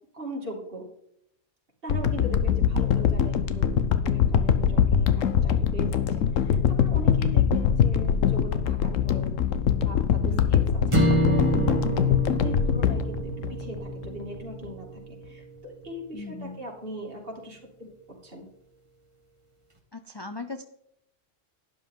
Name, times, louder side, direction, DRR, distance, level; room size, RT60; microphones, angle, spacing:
voice 1, 0.1-0.9 1.8-9.3 9.8-11.8 12.1-17.9 18.2-18.5, equal, 45° right, -2 dB, 3.0 m, -40 dB
sound 1, 1.9-14.1 14.6-14.7, left 8 dB, 85° left, 1.2 m, -23 dB
voice 2, 2.2-2.5 10.3-10.6 16.1-16.6 19.9-20.6, left 3 dB, 30° left, 7 dB, 0.5 m, -39 dB
sound 2, 10.9-15.3, right 1 dB, 25° right, 1.6 m, -27 dB
12.0 x 10.5 x 3.9 m, 0.73 s
omnidirectional pair, 1.3 m